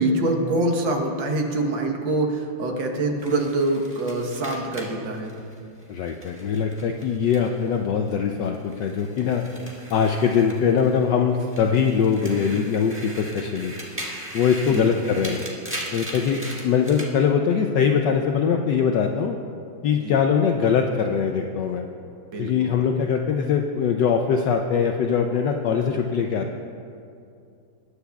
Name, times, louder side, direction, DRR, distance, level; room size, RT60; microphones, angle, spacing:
voice 1, 0.0-5.3 14.7-14.9 19.9-20.2 22.3-22.8, right 2 dB, 70° right, 2 dB, 1.8 m, -25 dB
sound 1, 3.2-7.8 8.1-11.0 11.4-17.1, equal, 5° right, 1.4 m, -39 dB
voice 2, 5.9-9.4 9.9-13.7 14.3-15.4 15.9-19.4 19.8-21.8 22.4-26.6, left 6 dB, 75° left, 4 dB, 1.1 m, -22 dB
21.0 x 9.9 x 2.3 m, 2.5 s
omnidirectional pair, 2.2 m